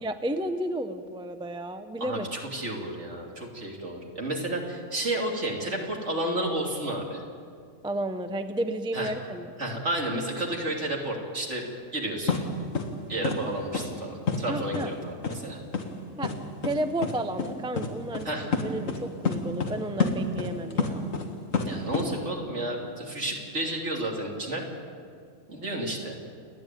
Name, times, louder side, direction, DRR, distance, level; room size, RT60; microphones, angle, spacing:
voice 1, 0.0-2.3 7.8-9.5 14.5-14.9 16.2-16.3 16.6-18.3 18.6-21.1, right 1 dB, 5° right, 8 dB, 0.6 m, -32 dB
voice 2, 2.0-7.2 8.9-9.1 9.6-11.7 11.9-12.4 13.1-15.6 18.2-18.5 21.6-24.6 25.5-26.2, right 1 dB, 55° right, 0 dB, 3.3 m, -31 dB
sound 1, 12.3-12.4 12.7-12.9 13.2-13.4 13.7-13.9 14.3-14.4 14.7-14.8 15.2-15.4 15.7-15.8 16.2-16.3 16.6-16.7 17.0-17.1 17.4-17.5 17.8-17.9 18.1-18.2 18.5-19.0 19.2-19.7 20.0-21.2 21.5-22.1, left 5 dB, 65° left, 2.0 m, -27 dB
29.5 x 10.5 x 9.1 m, 2.1 s
omnidirectional pair, 1.4 m